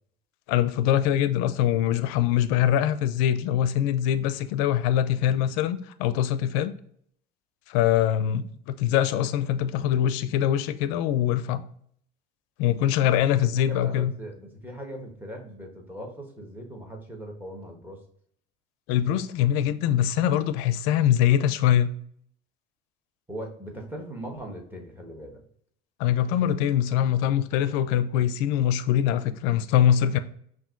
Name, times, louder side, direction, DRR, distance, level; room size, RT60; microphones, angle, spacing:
voice 1, 0.5-6.7 7.7-11.6 12.6-14.1 18.9-21.9 26.0-30.2, left 10 dB, 75° left, 0.4 m, -23 dB
voice 2, 13.4-18.0 23.3-25.5 30.1-30.2, equal, 10° right, 1.3 m, -40 dB
5.5 x 2.6 x 2.5 m
supercardioid pair, 90°, 19 cm